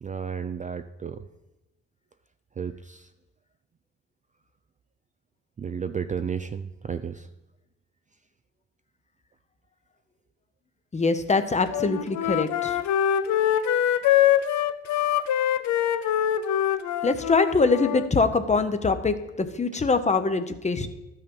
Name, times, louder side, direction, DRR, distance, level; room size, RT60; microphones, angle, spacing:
voice 1, 0.0-1.3 2.6-3.1 5.6-7.3 19.7-19.8, right 6 dB, 25° right, 10 dB, 0.3 m, -33 dB
voice 2, 10.9-12.8 17.0-20.9, left 4 dB, 25° left, 10 dB, 0.8 m, -23 dB
Wind instrument woodwind instrument, 11.7-18.1, left 10 dB, 70° left, 0.6 m, -24 dB
12.5 x 5.7 x 5.4 m, 1.0 s
cardioid pair, 90°, 30 cm